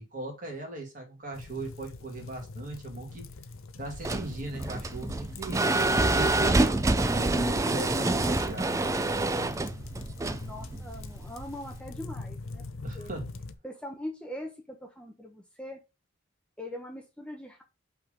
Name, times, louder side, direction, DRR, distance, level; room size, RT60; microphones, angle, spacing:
voice 1, 0.0-3.3 3.7-5.6 6.1-9.3 12.8-13.3, right 2 dB, 40° right, 2.1 m, -38 dB
sound 1, 1.3-13.5, left 3 dB, 85° left, 0.7 m, -43 dB
sound 2, 3.9-11.8, right 2 dB, 15° right, 0.3 m, -27 dB
voice 2, 10.4-12.6 12.9-13.1 13.6-15.8 16.6-17.6, left 1 dB, 5° left, 0.8 m, -41 dB
5.6 x 3.7 x 5.1 m
head